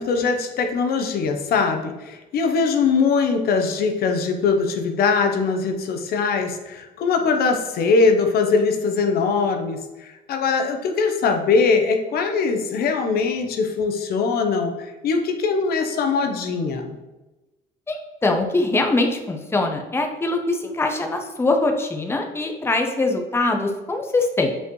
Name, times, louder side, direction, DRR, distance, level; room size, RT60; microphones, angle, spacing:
voice 1, 0.0-17.0, left 4 dB, 65° left, 5 dB, 0.9 m, -21 dB
voice 2, 18.2-24.5, left 2 dB, 15° left, 3 dB, 0.8 m, -22 dB
7.7 x 5.2 x 3.2 m, 1.1 s
cardioid pair, 110°, 17 cm